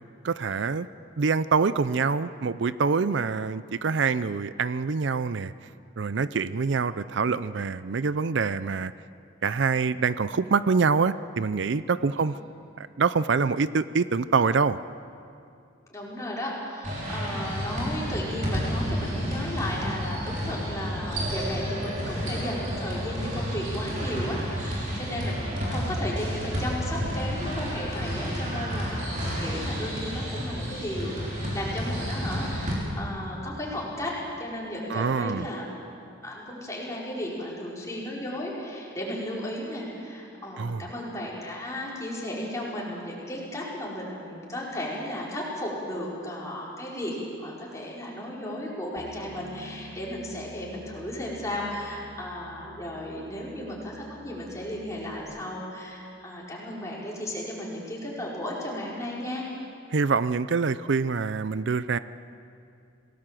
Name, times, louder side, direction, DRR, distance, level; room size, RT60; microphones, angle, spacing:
voice 1, 0.2-0.9 1.2-5.5 6.0-8.9 9.4-12.3 12.8-14.8 34.9-35.5 40.6-40.8 59.9-62.0, right 5 dB, 65° right, 15 dB, 0.5 m, -25 dB
voice 2, 15.9-35.7 36.2-59.4, left 1 dB, 15° left, -5 dB, 5.0 m, -34 dB
sound 1, 16.8-32.7, equal, 40° right, 5.5 m, -31 dB
Bass guitar, 49.0-55.2, equal, 90° right, 3.0 m, -48 dB
27.0 x 18.5 x 7.6 m, 2.5 s
head